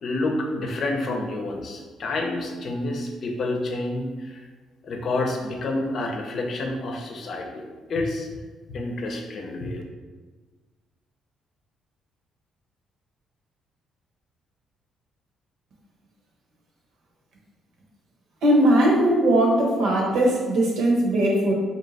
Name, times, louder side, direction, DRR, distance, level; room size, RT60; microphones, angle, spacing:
voice 1, 0.0-4.4 4.8-8.3 8.7-9.8, left 2 dB, 50° left, 2 dB, 0.6 m, -29 dB
voice 2, 18.4-21.5, right 1 dB, 80° right, -2 dB, 1.1 m, -19 dB
3.3 x 2.8 x 4.0 m, 1.4 s
cardioid pair, 115°, 0 cm